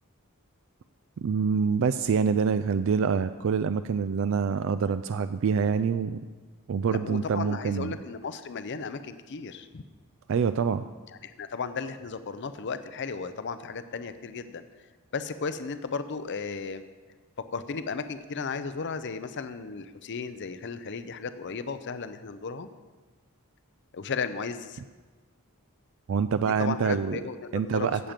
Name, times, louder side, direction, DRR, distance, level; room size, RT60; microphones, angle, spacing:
voice 1, 1.2-6.2 6.7-8.0 10.3-10.8 26.1-27.2 27.5-28.1, right 6 dB, 60° right, 12 dB, 0.3 m, -26 dB
voice 2, 6.9-9.8 11.2-14.6 15.1-16.8 17.5-22.7 23.9-24.8 26.4-28.1, left 5 dB, 55° left, 11 dB, 0.6 m, -35 dB
16.0 x 7.4 x 5.1 m, 1.4 s
head